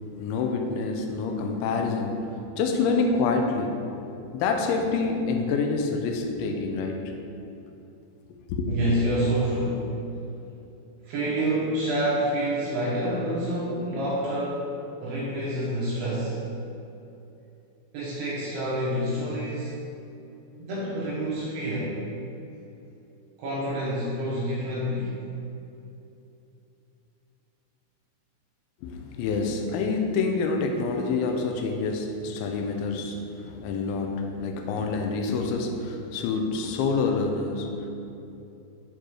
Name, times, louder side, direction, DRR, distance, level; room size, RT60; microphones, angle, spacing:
voice 1, 0.2-3.9 4.3-7.0 8.3-8.7 28.8-37.9, left 4 dB, 85° left, 3 dB, 3.1 m, -27 dB
voice 2, 8.7-9.9 11.0-14.7 15.0-16.4 17.9-19.7 20.6-22.0 23.4-25.2, right 1 dB, 70° right, -7 dB, 2.9 m, -27 dB
9.1 x 4.5 x 4.8 m, 2.8 s
omnidirectional pair, 5.2 m